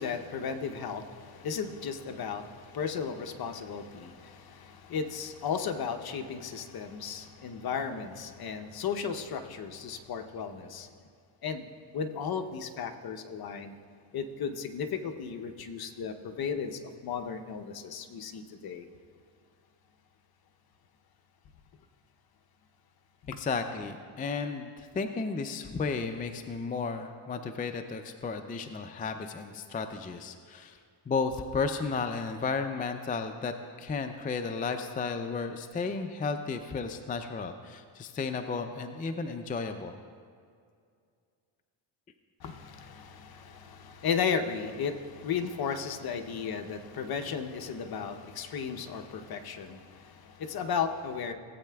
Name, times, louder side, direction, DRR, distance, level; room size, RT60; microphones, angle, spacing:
voice 1, 0.0-10.9 11.4-11.6 11.9-13.7 14.1-18.9 23.2-23.4 42.4-51.3, left 6 dB, 45° left, 6 dB, 0.8 m, -35 dB
voice 2, 23.3-30.8 31.1-33.5 33.8-40.0, left 4 dB, 20° left, 7 dB, 0.4 m, -33 dB
18.0 x 8.3 x 2.3 m, 2.2 s
cardioid pair, 95°, 50 cm